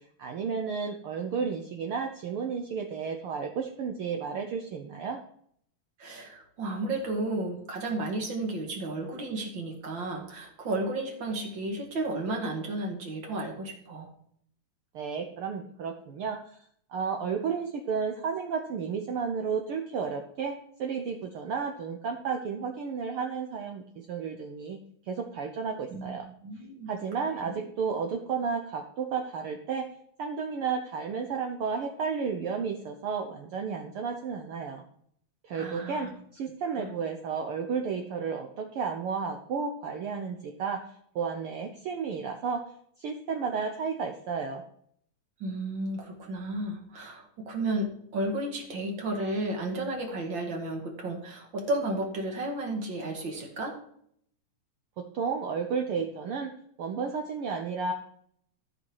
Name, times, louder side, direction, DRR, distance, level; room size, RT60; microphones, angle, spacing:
voice 1, 0.2-5.2 14.9-16.6 16.9-24.8 25.0-26.3 26.9-29.9 30.2-34.8 35.4-40.8 41.1-42.6 43.0-44.6 55.0-56.5 56.8-57.9, right 5 dB, 70° right, 4 dB, 1.3 m, -32 dB
voice 2, 6.0-14.1 25.9-26.9 35.5-36.1 36.8-36.9 45.4-53.8, right 2 dB, 40° right, 2 dB, 2.4 m, -33 dB
14.0 x 5.6 x 4.7 m, 0.67 s
omnidirectional pair, 3.4 m